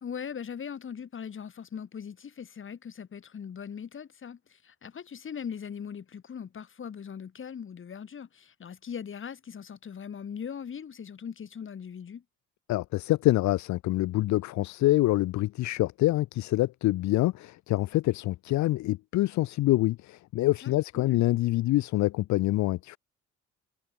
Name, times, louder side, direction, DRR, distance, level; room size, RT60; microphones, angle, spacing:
voice 1, 0.0-12.2 20.6-21.2, left 7 dB, 40° left, 1.7 m, -40 dB
voice 2, 12.7-23.0, left 17 dB, 65° left, 0.5 m, -26 dB
cardioid pair, 90°, 30 cm